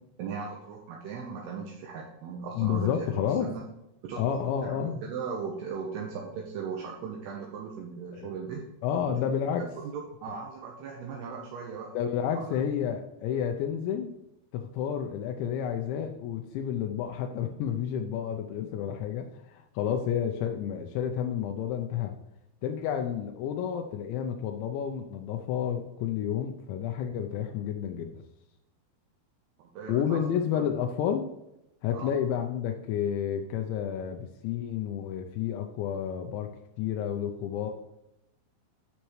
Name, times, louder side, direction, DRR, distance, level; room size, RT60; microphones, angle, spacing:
voice 1, 0.2-3.1 3.4-3.7 4.0-4.4 4.6-8.6 9.6-11.9 12.4-12.6 29.6-30.2 30.5-30.6 31.9-32.1, right 6 dB, 75° right, -1 dB, 2.7 m, -38 dB
voice 2, 2.5-3.5 4.2-5.0 8.1-8.3 8.8-9.6 11.9-14.1 14.5-22.1 22.6-28.2 29.9-31.3 31.8-36.5 36.8-37.7, left 9 dB, 85° left, 4 dB, 2.9 m, -30 dB
10.0 x 6.5 x 3.1 m, 0.89 s
omnidirectional pair, 5.4 m